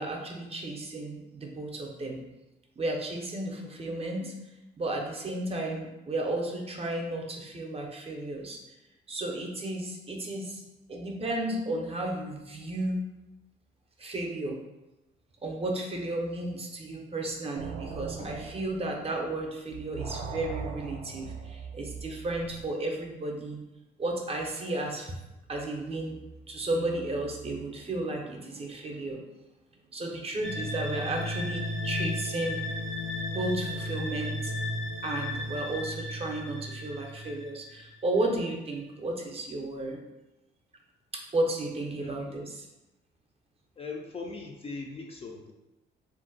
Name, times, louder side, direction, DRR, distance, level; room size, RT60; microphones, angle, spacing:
voice 1, 0.0-2.2 2.8-4.3 4.8-8.6 9.1-10.6 10.9-13.0 14.0-14.6 15.4-23.6 24.0-25.2 25.5-26.2 26.5-29.3 29.9-32.6 33.3-34.5 35.0-40.0 41.1-42.5, right 2 dB, 30° right, 1 dB, 0.6 m, -33 dB
sound 1, 17.5-19.4 19.7-22.7, right 5 dB, 90° right, 0.5 m, -40 dB
sound 2, 30.4-38.0, left 1 dB, 75° left, 0.7 m, -34 dB
voice 2, 42.0-42.4 43.8-45.5, left 3 dB, 30° left, 1 dB, 0.4 m, -40 dB
2.5 x 2.1 x 3.8 m, 0.98 s
cardioid pair, 90°, 20 cm